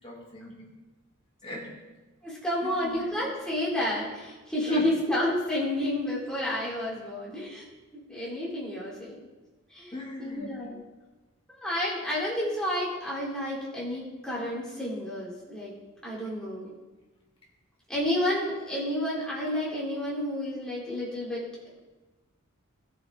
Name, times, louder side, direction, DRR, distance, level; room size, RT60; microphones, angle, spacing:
voice 1, 0.0-0.6 1.4-1.8 2.6-3.0 4.7-4.9 9.9-10.6, left 1 dB, 25° left, -3 dB, 2.6 m, -40 dB
voice 2, 2.2-7.7 7.9-9.3 9.7-10.8 11.5-15.7 16.0-16.8 17.9-21.5, left 1 dB, 5° left, -7 dB, 3.6 m, -30 dB
18.5 x 7.2 x 3.8 m, 1.2 s
head